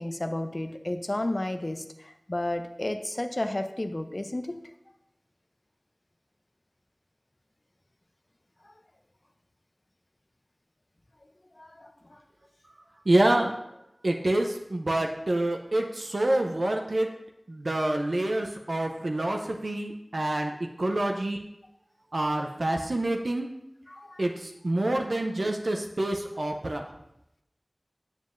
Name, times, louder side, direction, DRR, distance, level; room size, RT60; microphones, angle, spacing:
voice 1, 0.0-4.6 11.6-11.9 21.0-21.2 23.9-24.3, left 1 dB, 45° left, 7 dB, 0.5 m, -32 dB
voice 2, 13.1-13.5 14.0-17.1 17.5-20.5 20.8-21.4 22.1-23.5 24.2-24.3 24.6-26.8, right 1 dB, 80° right, 2 dB, 0.5 m, -27 dB
7.4 x 7.2 x 2.5 m, 0.86 s
wide cardioid pair, 50°, 0 cm